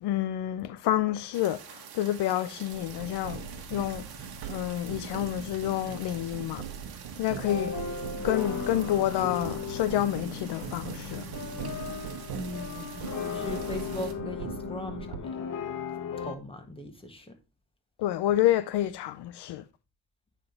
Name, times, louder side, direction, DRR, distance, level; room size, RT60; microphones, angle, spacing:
voice 1, 0.0-3.5 3.7-4.0 4.5-6.6 7.2-7.8 8.2-11.2 18.0-19.6, left 13 dB, 75° left, 0.6 m, -28 dB
sound 1, 1.3-14.1, right 8 dB, 60° right, 1.4 m, -47 dB
sound 2, 2.7-15.2, right 7 dB, 80° right, 1.3 m, -41 dB
sound 3, 7.5-16.3, left 6 dB, 50° left, 1.2 m, -36 dB
voice 2, 12.3-15.4 16.2-17.4, left 2 dB, 15° left, 1.7 m, -39 dB
8.9 x 3.6 x 3.9 m
cardioid pair, 85°, 41 cm